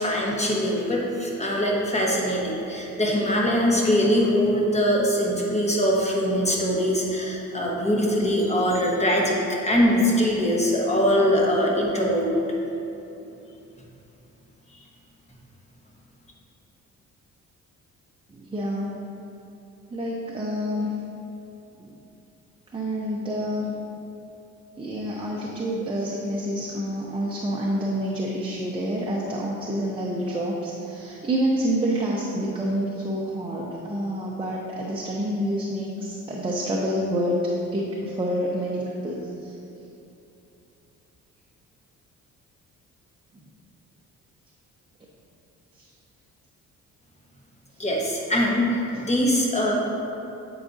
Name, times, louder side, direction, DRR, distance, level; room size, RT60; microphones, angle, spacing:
voice 1, 0.0-12.3 47.8-49.7, equal, 20° left, -3 dB, 1.2 m, -22 dB
voice 2, 18.3-19.0 19.9-21.0 21.8-22.0 22.7-23.7 24.8-39.6 43.3-43.4 45.8-45.9, equal, 15° right, -4 dB, 0.7 m, -28 dB
8.4 x 4.8 x 2.7 m, 2.8 s
cardioid pair, 90°, 30 cm